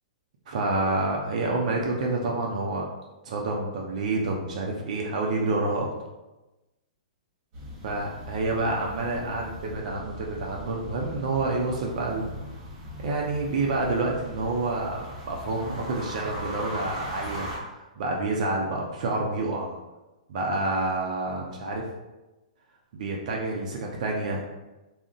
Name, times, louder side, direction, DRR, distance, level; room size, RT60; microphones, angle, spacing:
voice 1, 0.5-2.9 3.2-5.9 7.8-12.3 13.0-19.8 20.3-21.8 22.9-24.4, right 2 dB, 60° right, -1 dB, 0.5 m, -28 dB
sound 1, 7.5-17.6, equal, 40° right, 1.0 m, -39 dB
2.4 x 2.1 x 3.7 m, 1.1 s
hypercardioid pair, 130°, 4 cm